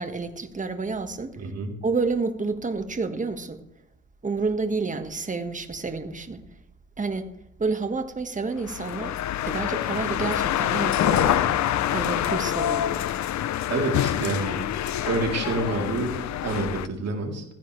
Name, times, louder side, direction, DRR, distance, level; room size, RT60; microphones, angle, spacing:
voice 1, 0.0-1.4 1.8-3.6 4.2-6.4 7.0-7.3 7.6-9.2 9.4-11.6 11.9-13.1, right 4 dB, 25° right, 1.7 m, -29 dB
voice 2, 1.4-1.7 13.7-14.6 15.0-17.4, right 3 dB, 55° right, 3.5 m, -28 dB
sound 1, 8.6-16.9, left 11 dB, 65° left, 0.7 m, -26 dB
16.0 x 15.5 x 3.3 m
cardioid pair, 90°, 30 cm